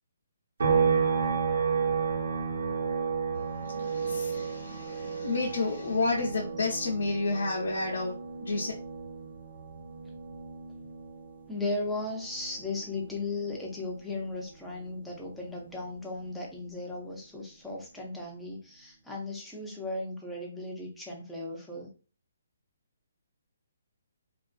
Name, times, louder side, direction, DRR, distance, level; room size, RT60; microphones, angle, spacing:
sound 1, 0.6-14.1 14.5-16.7, right 6 dB, 70° right, 1.0 m, -33 dB
voice 1, 3.3-8.7, left 3 dB, 75° left, -2 dB, 0.6 m, -31 dB
voice 2, 11.5-21.9, left 2 dB, 5° left, -3 dB, 0.5 m, -36 dB
2.5 x 2.3 x 2.5 m, 0.36 s
hypercardioid pair, 170°, 0 cm